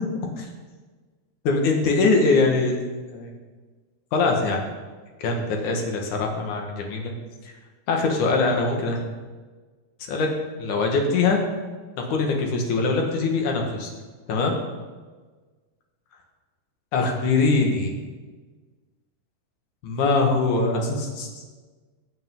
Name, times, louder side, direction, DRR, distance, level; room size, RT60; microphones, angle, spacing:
voice 1, 1.4-2.8 3.1-3.3 4.1-4.6 5.2-7.1 7.9-9.0 10.1-10.3 10.6-11.4 12.1-13.9 14.3-14.6 16.9-17.9 19.8-21.3, left 3 dB, 55° left, 1 dB, 3.0 m, -22 dB
20.0 x 9.1 x 3.9 m, 1.4 s
omnidirectional pair, 4.5 m